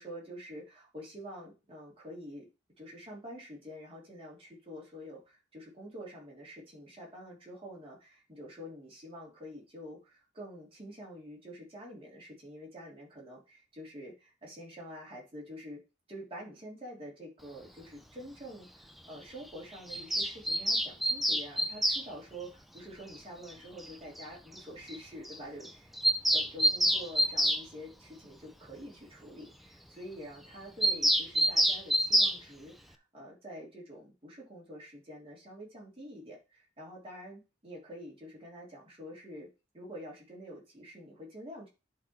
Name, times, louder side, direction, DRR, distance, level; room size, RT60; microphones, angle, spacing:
voice 1, 0.0-2.5 2.8-15.8 16.1-25.9 26.3-39.5 39.7-41.7, equal, 30° right, -3 dB, 3.3 m, -47 dB
Bird vocalization bird call bird song, 19.9-22.0 23.5-23.6 23.8-23.9 24.2-24.3 24.6-24.7 24.9-25.0 25.2-25.4 25.6-27.6 30.8-32.4, equal, ahead, 0.5 m, -27 dB
11.0 x 3.7 x 4.6 m, 0.29 s
head